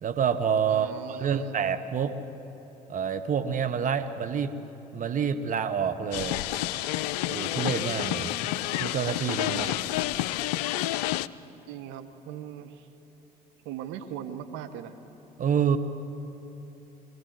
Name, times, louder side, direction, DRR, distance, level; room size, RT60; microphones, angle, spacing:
voice 1, 0.0-2.2 2.9-4.5 4.9-6.4 7.3-8.3 8.7-9.8 15.4-15.8, right 7 dB, 40° right, 10 dB, 1.3 m, -28 dB
voice 2, 0.7-1.6 9.5-9.9 11.7-12.9 13.6-15.0, right 10 dB, 65° right, 8 dB, 1.4 m, -39 dB
sound 1, 6.1-11.3, left 15 dB, 75° left, 0.5 m, -29 dB
23.0 x 16.0 x 8.0 m, 3.0 s
hypercardioid pair, 60°, 21 cm